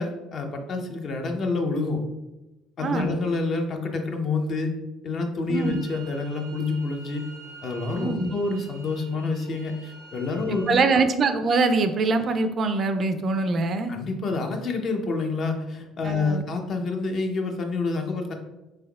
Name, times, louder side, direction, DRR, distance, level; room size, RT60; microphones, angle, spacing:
voice 1, 0.0-2.0 2.8-4.7 5.0-7.2 7.6-11.0 13.9-18.3, left 3 dB, 50° left, 4 dB, 0.6 m, -28 dB
sound 1, 5.5-10.7, right 3 dB, 90° left, 1.4 m, -47 dB
voice 2, 5.5-5.8 8.0-8.3 10.5-13.9 16.0-16.4, right 3 dB, 45° right, 9 dB, 0.3 m, -23 dB
3.7 x 3.4 x 2.3 m, 1.0 s
supercardioid pair, 75°, 0 cm